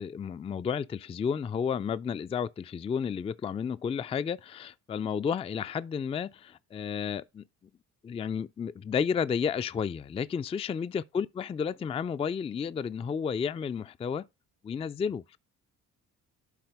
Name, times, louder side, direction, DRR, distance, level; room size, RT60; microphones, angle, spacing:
voice 1, 0.0-7.4 8.0-14.3 14.6-15.4, left 7 dB, 15° left, 0.3 m, -32 dB
11.5 x 3.9 x 3.5 m
hypercardioid pair, 45°, 44 cm